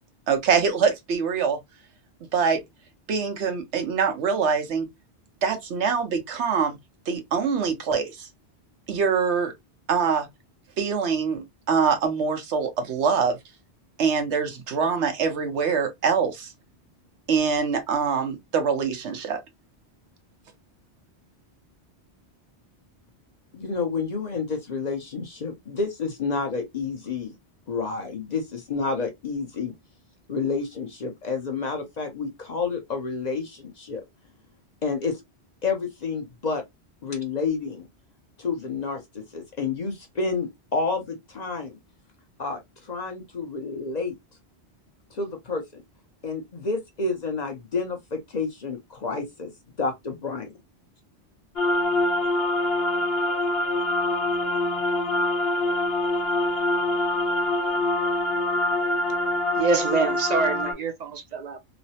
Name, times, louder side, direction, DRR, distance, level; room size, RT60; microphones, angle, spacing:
voice 1, 0.3-1.6 2.3-2.6 3.1-4.9 5.4-6.8 7.1-8.3 8.9-9.5 9.9-10.3 10.8-13.4 14.0-16.5 17.3-19.4, right 6 dB, 85° right, 1.1 m, -24 dB
voice 2, 23.5-27.3 27.7-29.7 30.3-34.0 34.8-35.2 35.6-36.6 37.0-37.9 38.4-41.8 42.4-44.2 45.1-45.6 46.2-49.5 49.8-50.5, left 4 dB, 45° left, 0.7 m, -29 dB
sound 1, 51.6-60.7, left 1 dB, 65° left, 1.0 m, -24 dB
voice 3, 59.6-61.6, right 4 dB, 50° right, 0.6 m, -25 dB
3.1 x 2.0 x 2.7 m
omnidirectional pair, 1.1 m